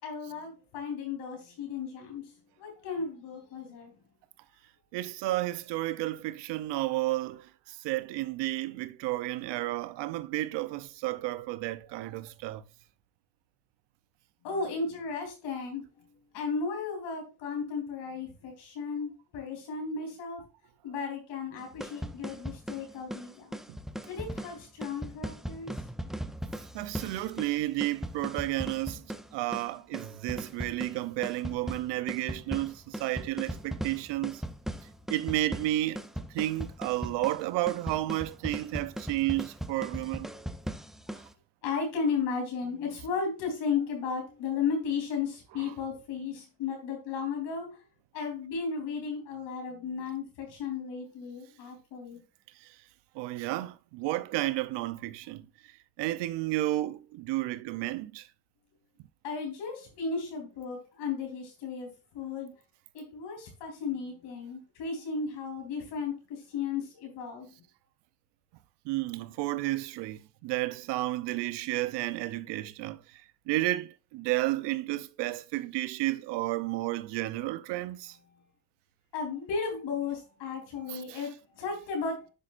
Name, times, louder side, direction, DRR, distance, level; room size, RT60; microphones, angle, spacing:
voice 1, 0.0-3.9 14.4-16.0 16.3-20.4 20.8-23.6 24.1-25.7 41.1-41.2 41.6-47.8 48.1-52.2 59.2-62.5 62.9-67.5 79.1-82.3, left 5 dB, 85° left, 3.6 m, -35 dB
voice 2, 4.9-12.6 26.7-34.4 35.1-36.0 36.3-40.3 52.6-52.7 53.1-55.5 56.0-58.3 68.8-78.2 80.9-81.2, right 17 dB, 85° right, 0.7 m, -32 dB
sound 1, 21.6-41.3, right 1 dB, ahead, 0.5 m, -39 dB
10.0 x 5.3 x 2.5 m
cardioid pair, 95°, 41 cm